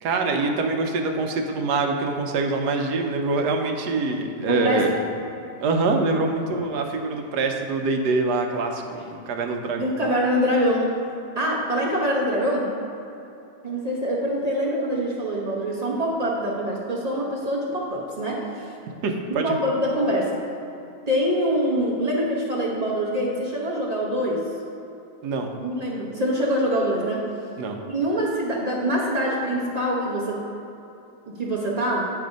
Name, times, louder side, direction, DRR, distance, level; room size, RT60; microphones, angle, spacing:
voice 1, 0.0-4.9 5.6-9.9 19.0-19.6 25.2-25.5 27.6-27.8, right 3 dB, 75° right, 3 dB, 1.2 m, -24 dB
voice 2, 4.5-4.8 9.0-9.1 9.7-10.9 11.4-12.7 13.6-18.8 19.4-20.4 21.1-24.4 25.6-27.2 27.8-30.4 31.2-32.1, equal, 35° right, -4 dB, 0.7 m, -24 dB
9.5 x 3.4 x 5.1 m, 2.9 s
omnidirectional pair, 1.8 m